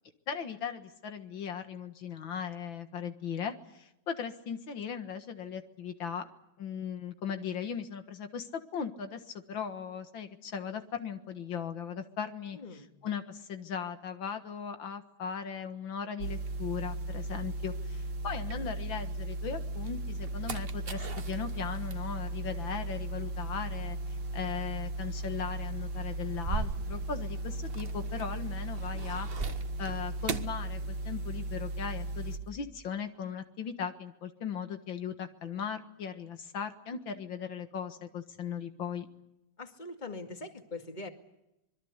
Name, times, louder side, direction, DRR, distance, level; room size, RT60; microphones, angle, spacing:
voice 1, 0.3-6.3 6.6-29.3 29.8-39.1, left 7 dB, 80° left, 8 dB, 2.3 m, -38 dB
voice 2, 12.5-12.9 39.6-41.1, left 3 dB, 25° left, 5 dB, 2.3 m, -42 dB
sound 1, 16.2-32.4, right 1 dB, 85° right, 2.3 m, -36 dB
sound 2, 16.5-19.2 19.7-31.4 31.7-32.5, right 5 dB, 35° right, 1.1 m, -42 dB
25.5 x 22.0 x 8.2 m, 0.90 s
omnidirectional pair, 2.1 m